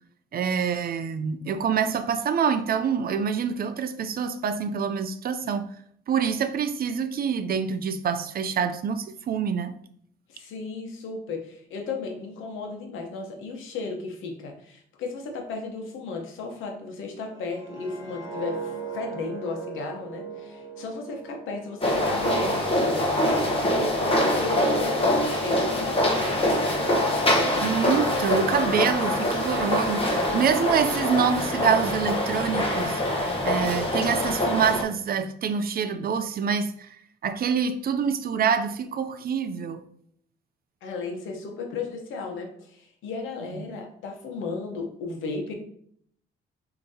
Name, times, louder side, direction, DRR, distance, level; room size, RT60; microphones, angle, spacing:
voice 1, 0.3-5.7 6.1-9.8 27.6-36.9 37.2-39.8, right 6 dB, 50° right, 0.5 m, -26 dB
voice 2, 10.3-26.8 40.8-45.6, left 4 dB, 90° left, 1.0 m, -35 dB
sound 1, 17.3-22.4 22.7-23.0, right 5 dB, 10° right, 1.3 m, -39 dB
sound 2, 21.8-34.8, left 1 dB, 30° left, 1.1 m, -24 dB
6.2 x 2.9 x 2.8 m
cardioid pair, 90°, 20 cm